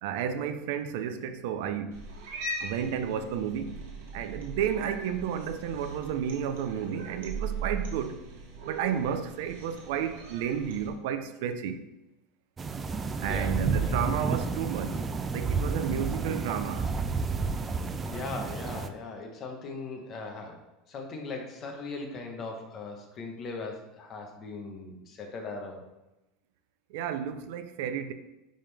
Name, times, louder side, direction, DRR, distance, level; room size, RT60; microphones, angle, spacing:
voice 1, 0.0-2.1 2.6-3.8 4.1-8.2 8.6-11.8 13.2-15.0 15.3-16.9 26.9-28.1, right 8 dB, 65° right, 0.6 m, -32 dB
Cat, 1.9-10.9, right 3 dB, 90° right, 1.9 m, -39 dB
sound 1, 12.6-18.9, right 4 dB, 15° right, 0.3 m, -31 dB
voice 2, 13.2-13.9 18.0-20.6 20.9-25.9, left 3 dB, 30° left, 1.1 m, -39 dB
10.0 x 3.7 x 3.4 m
supercardioid pair, 170°, 0 cm